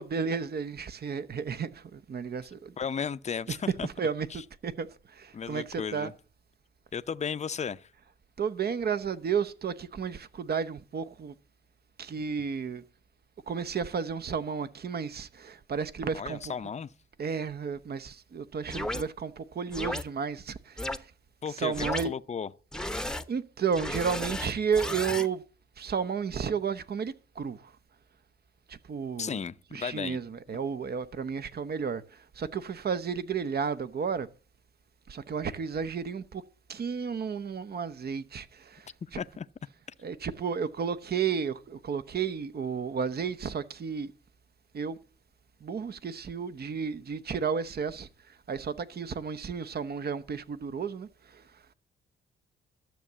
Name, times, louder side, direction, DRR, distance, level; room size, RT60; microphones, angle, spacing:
voice 1, 0.0-2.7 3.5-6.1 8.4-11.3 12.0-12.8 13.5-16.7 17.2-21.1 21.5-22.2 22.9-25.4 25.8-27.7 28.7-29.4 29.7-34.3 35.1-36.4 36.7-39.2 40.0-44.1 44.7-45.0 45.6-51.6, right 6 dB, 50° right, 1.0 m, -33 dB
voice 2, 2.8-3.9 5.3-6.1 6.9-7.9 16.1-16.9 21.4-22.5 29.2-30.2 39.2-39.4, left 6 dB, 30° left, 0.6 m, -34 dB
sound 1, 18.7-19.0 19.7-20.0 20.8-21.0 21.7-22.0 22.7-23.2 23.7-25.3, left 1 dB, 5° left, 0.9 m, -33 dB
12.5 x 6.9 x 7.4 m
cardioid pair, 75°, 21 cm